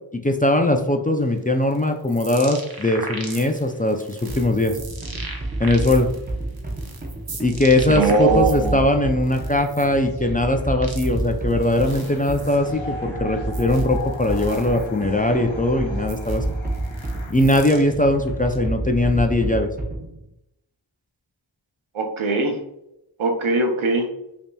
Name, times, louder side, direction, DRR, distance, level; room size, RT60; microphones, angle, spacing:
voice 1, 0.1-4.7 5.6-6.1 7.4-16.4 17.3-19.7, left 1 dB, 20° left, 4 dB, 0.3 m, -20 dB
sound 1, 1.2-8.7 9.1-18.6, right 3 dB, 50° right, 0.7 m, -40 dB
sound 2, 4.3-20.2, right 2 dB, 20° right, 0.7 m, -30 dB
voice 2, 7.9-8.8 21.9-22.6 23.2-24.1, right 3 dB, 90° right, 3 dB, 0.7 m, -21 dB
sound 3, 11.8-17.3, left 3 dB, 90° left, 0.7 m, -38 dB
5.3 x 2.8 x 2.2 m, 0.85 s
wide cardioid pair, 55°, 46 cm